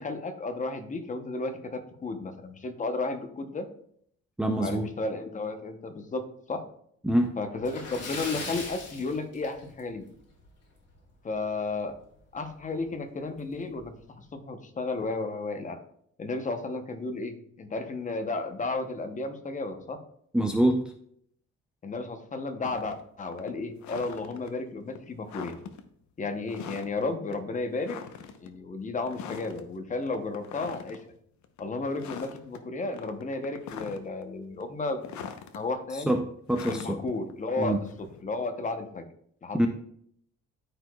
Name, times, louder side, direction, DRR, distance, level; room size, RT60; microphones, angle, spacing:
voice 1, 0.0-3.7 4.6-6.6 7.4-10.0 11.2-11.9 12.3-15.8 16.2-20.0 21.8-25.5 26.2-28.0 28.4-31.0 31.6-35.1 35.5-36.2 36.7-37.8 38.2-39.1 39.4-39.7, left 3 dB, 25° left, 7 dB, 0.8 m, -33 dB
voice 2, 4.4-4.9 7.0-7.3 20.3-20.9 35.9-37.0 37.6-37.8 39.5-39.7, right 1 dB, 5° right, 4 dB, 0.4 m, -25 dB
Splash splatter, 7.6-10.0 10.3-10.5 10.9-11.0 12.4-12.5 12.9-13.0 13.6-13.8, left 3 dB, 55° left, 2.6 m, -39 dB
sound 1, 22.6-23.0 23.3-24.5 24.9-25.0 25.3-25.8 26.5-27.1 27.3-27.4 27.8-28.5 29.0-29.6 30.0-31.0 31.4-31.6 31.9-32.6 32.9-34.2 34.6-35.6 36.5-38.2, left 7 dB, 70° left, 0.8 m, -42 dB
13.0 x 4.9 x 2.3 m, 0.66 s
cardioid pair, 155°, 30 cm